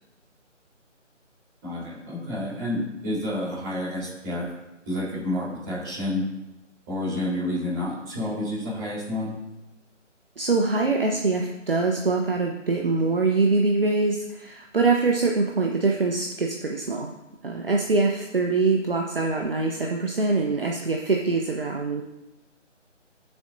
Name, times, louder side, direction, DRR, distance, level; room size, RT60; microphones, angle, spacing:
voice 1, 1.6-4.5 4.9-6.2 6.9-9.4, left 1 dB, 15° right, -8 dB, 4.0 m, -29 dB
voice 2, 10.4-17.1 17.4-22.0, right 3 dB, 45° right, 1 dB, 1.0 m, -24 dB
18.5 x 7.2 x 2.7 m, 0.97 s
figure-of-eight pair, 160°, 38 cm